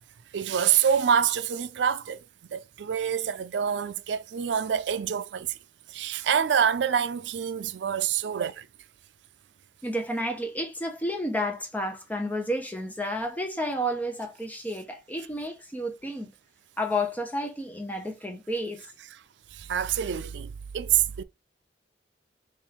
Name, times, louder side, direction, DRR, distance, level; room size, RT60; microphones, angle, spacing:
voice 1, 0.3-2.2 2.5-5.5 5.9-8.7 19.5-21.2, right 8 dB, 80° right, 0.4 m, -26 dB
voice 2, 9.8-16.3 16.8-18.8, equal, 10° left, 0.8 m, -31 dB
3.7 x 2.6 x 4.3 m
head